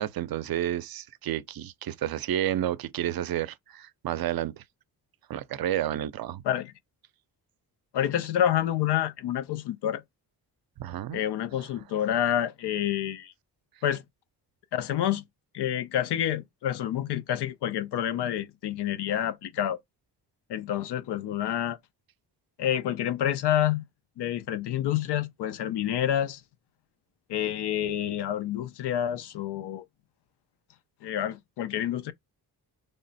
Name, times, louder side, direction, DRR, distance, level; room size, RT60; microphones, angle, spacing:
voice 1, 0.0-4.6 5.3-6.4 10.8-11.2, right 11 dB, 60° right, 0.5 m, -30 dB
voice 2, 7.9-10.0 11.1-13.3 13.8-14.0 14.7-15.2 15.5-19.8 20.5-21.8 22.6-23.8 24.2-26.4 27.3-29.8 31.0-32.1, left 11 dB, 85° left, 0.6 m, -28 dB
3.4 x 2.1 x 4.0 m
cardioid pair, 70°, 40 cm